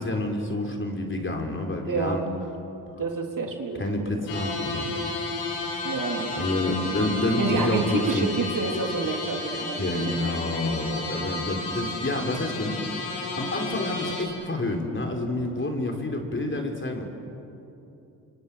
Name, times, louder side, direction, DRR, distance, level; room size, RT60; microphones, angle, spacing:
voice 1, 0.0-2.2 3.8-5.2 6.4-8.3 9.8-17.0, left 2 dB, 25° left, 2 dB, 5.0 m, -28 dB
voice 2, 1.8-2.2 3.0-3.8 4.1-4.2 5.8-6.4 7.4-10.1, right 4 dB, 45° right, 2 dB, 3.7 m, -28 dB
sound 1, 4.3-14.2, left 2 dB, 80° left, 4.9 m, -32 dB
29.0 x 26.0 x 6.6 m, 2.9 s
hypercardioid pair, 50°, 43 cm